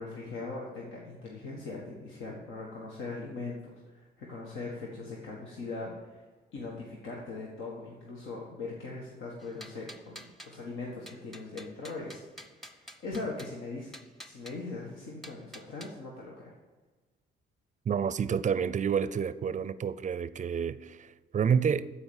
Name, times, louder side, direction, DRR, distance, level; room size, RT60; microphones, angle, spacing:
voice 1, 0.0-6.2 6.5-13.9 14.2-16.5, left 3 dB, 80° left, 1.6 m, -40 dB
sound 1, 9.4-10.6 11.1-13.6 13.9-14.6 15.2-15.9, equal, ahead, 0.8 m, -49 dB
voice 2, 17.9-21.9, right 7 dB, 40° right, 0.5 m, -29 dB
13.0 x 5.0 x 7.2 m
cardioid pair, 90°, 20 cm